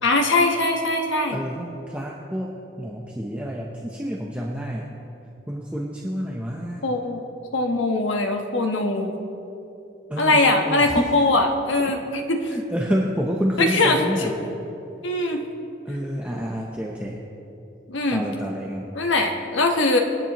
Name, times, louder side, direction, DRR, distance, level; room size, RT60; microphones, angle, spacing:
voice 1, 0.0-1.4 6.8-7.2 7.5-9.1 10.2-12.5 13.6-14.3 15.0-15.4 17.9-18.2 18.9-20.0, left 2 dB, 85° left, 3 dB, 1.2 m, -21 dB
voice 2, 1.3-4.9 5.5-6.9 10.1-11.3 11.9-12.0 12.5-14.5 15.8-17.2 18.1-18.9, equal, 5° right, -2 dB, 0.7 m, -28 dB
25.5 x 9.2 x 3.0 m, 2.9 s
head